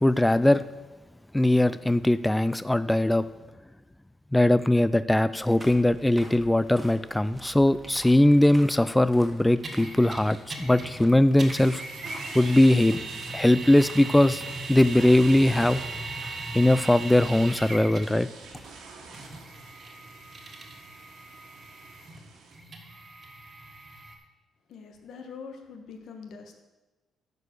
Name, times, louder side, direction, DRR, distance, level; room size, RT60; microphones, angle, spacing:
voice 1, 0.0-0.6 1.3-3.2 4.3-11.8 12.3-13.0 13.3-14.4 14.7-15.8 16.5-18.3, left 1 dB, 10° left, 15 dB, 0.3 m, -20 dB
sound 1, 5.3-19.3, right 1 dB, 10° right, 1.6 m, -50 dB
sound 2, 9.6-11.1 11.4-18.2 19.1-24.1, right 2 dB, 40° right, 1.6 m, -38 dB
sound 3, 11.6-22.6, right 4 dB, 85° right, 1.9 m, -47 dB
voice 2, 24.7-26.6, left 5 dB, 70° left, 4 dB, 1.3 m, -43 dB
11.0 x 4.8 x 6.5 m, 1.1 s
cardioid pair, 90°, 0 cm